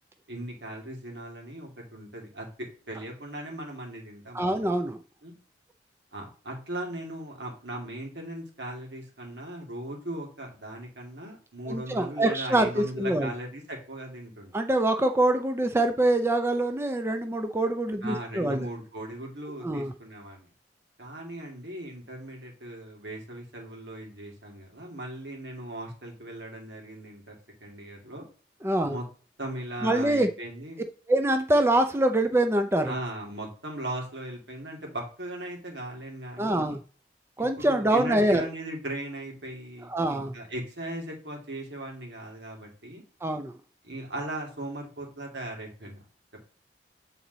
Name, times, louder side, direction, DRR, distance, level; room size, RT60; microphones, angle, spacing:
voice 1, 0.3-4.7 5.2-5.3 6.1-14.5 18.0-20.5 21.0-28.3 28.9-29.0 29.4-30.8 32.9-36.8 37.4-43.0 43.8-46.0, right 1 dB, 80° right, 0 dB, 2.4 m, -38 dB
voice 2, 4.3-5.0 11.7-13.3 14.5-18.7 19.6-19.9 28.6-29.0 29.8-30.3 31.1-32.9 36.4-36.8 37.4-38.4 39.9-40.3 43.2-43.5, right 1 dB, 15° right, 6 dB, 0.5 m, -24 dB
7.8 x 4.0 x 4.0 m, 0.40 s
head